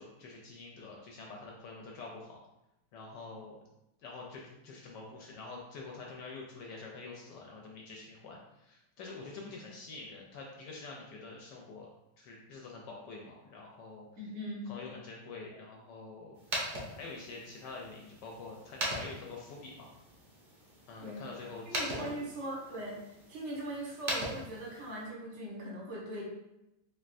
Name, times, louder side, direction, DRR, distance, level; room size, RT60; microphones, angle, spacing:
voice 1, 0.0-2.4 2.9-3.6 4.0-11.9 12.2-14.1 14.7-19.9 20.9-22.1, left 3 dB, 75° left, -1 dB, 1.1 m, -46 dB
voice 2, 14.2-14.7 21.0-21.3 21.6-23.0 23.3-26.2, right 1 dB, 45° right, -4 dB, 1.1 m, -40 dB
sound 1, 16.3-25.1, right 1 dB, 65° right, 0.5 m, -41 dB
3.5 x 3.2 x 2.5 m, 0.90 s
omnidirectional pair, 2.1 m